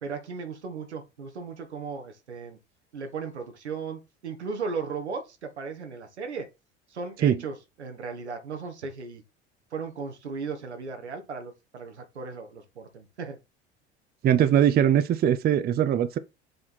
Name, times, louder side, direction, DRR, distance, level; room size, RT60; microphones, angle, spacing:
voice 1, 0.0-2.6 2.9-6.5 6.9-9.2 9.7-13.4, right 5 dB, 80° right, 1.4 m, -36 dB
voice 2, 14.2-16.2, right 10 dB, 30° right, 0.6 m, -21 dB
7.7 x 3.6 x 4.2 m
figure-of-eight pair, 70°, 33 cm